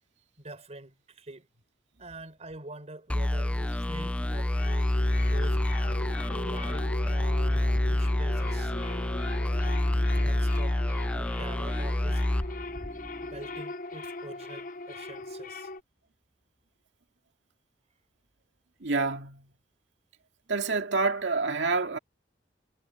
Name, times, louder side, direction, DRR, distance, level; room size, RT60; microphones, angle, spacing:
voice 1, 0.4-1.5 2.0-4.9 5.2-5.6 6.3-8.7 9.6-10.8 11.1-12.2 13.2-15.7, right 2 dB, 35° right, 4.0 m, -45 dB
sound 1, 3.1-13.4, left 1 dB, 5° left, 0.3 m, -28 dB
sound 2, 3.8-15.8, left 2 dB, 45° left, 0.8 m, -40 dB
voice 2, 18.8-19.5 20.5-22.0, right 3 dB, 70° right, 2.2 m, -27 dB
head